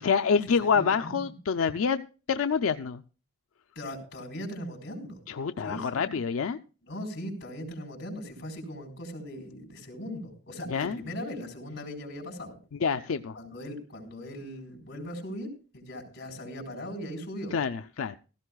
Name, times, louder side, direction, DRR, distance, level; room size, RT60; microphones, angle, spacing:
voice 1, 0.0-2.0 2.3-3.0 5.3-6.6 10.7-11.0 12.7-13.4 17.5-18.2, left 6 dB, 90° left, 9 dB, 0.5 m, -27 dB
voice 2, 0.6-1.3 3.8-5.2 5.6-6.1 6.8-12.6 13.3-17.5, equal, 55° left, 2 dB, 4.1 m, -39 dB
16.0 x 14.5 x 2.3 m, 0.36 s
head